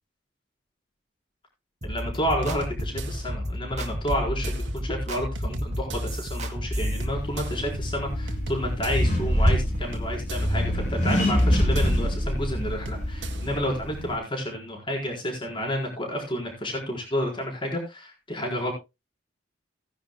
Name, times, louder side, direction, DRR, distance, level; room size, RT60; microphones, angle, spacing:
voice 1, 1.8-18.7, equal, 25° left, 0 dB, 4.3 m, -30 dB
sound 1, 1.8-7.0, right 1 dB, 40° right, 2.1 m, -34 dB
sound 2, 1.9-13.6, left 1 dB, 70° right, 1.7 m, -34 dB
Accelerating revving vroom, 6.8-14.2, equal, 45° left, 5.2 m, -26 dB
18.0 x 10.0 x 2.3 m, 0.24 s
head